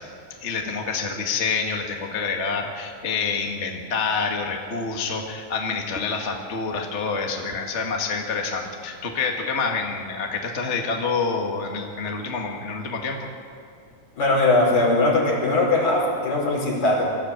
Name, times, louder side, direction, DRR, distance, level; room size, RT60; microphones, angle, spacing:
voice 1, 0.4-13.2, left 4 dB, 30° left, 1 dB, 1.4 m, -27 dB
voice 2, 14.2-17.0, left 2 dB, 60° left, -3 dB, 6.3 m, -20 dB
23.0 x 14.0 x 8.7 m, 2.3 s
omnidirectional pair, 3.7 m